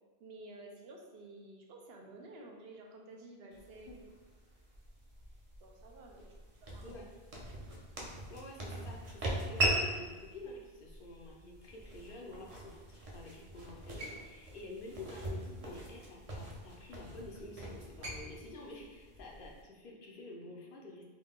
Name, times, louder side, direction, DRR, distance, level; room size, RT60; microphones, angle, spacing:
voice 1, 0.2-4.0 5.6-6.2 6.6-7.0, right 2 dB, 75° right, 1 dB, 0.8 m, -52 dB
sound 1, 3.5-19.6, right 1 dB, 40° right, 0.6 m, -41 dB
voice 2, 8.3-21.1, left 2 dB, 60° left, -2 dB, 0.8 m, -49 dB
3.7 x 2.2 x 3.5 m, 1.3 s
omnidirectional pair, 1.1 m